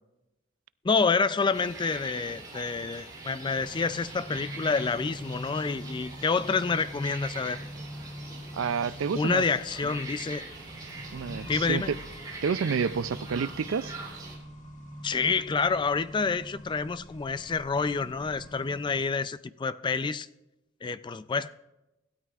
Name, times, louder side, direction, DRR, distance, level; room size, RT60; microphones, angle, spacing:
voice 1, 0.8-7.6 9.2-10.5 11.5-11.9 15.0-20.3 20.8-21.5, left 4 dB, 25° left, 0.3 m, -28 dB
sound 1, 1.5-14.4, right 3 dB, 20° right, 3.2 m, -43 dB
Accelerating revving vroom, 3.6-19.0, equal, 40° left, 1.8 m, -44 dB
voice 2, 8.6-9.5 11.1-12.0 12.4-13.9, right 6 dB, 70° right, 0.4 m, -29 dB
25.5 x 12.5 x 2.4 m
head